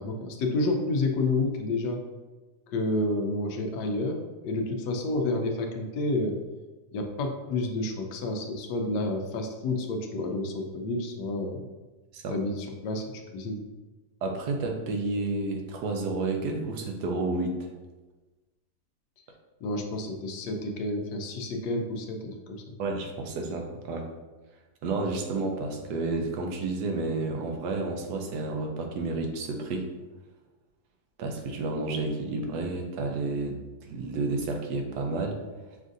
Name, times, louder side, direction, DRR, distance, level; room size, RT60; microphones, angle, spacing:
voice 1, 0.0-2.0 2.7-6.4 6.9-11.6 12.3-13.6 19.6-22.8, left 2 dB, 85° left, 3 dB, 1.2 m, -30 dB
voice 2, 14.2-17.7 22.8-24.1 24.8-29.9 31.2-33.6 33.9-35.4, right 3 dB, 80° right, 2 dB, 1.2 m, -30 dB
6.2 x 2.5 x 2.5 m, 1.2 s
omnidirectional pair, 1.8 m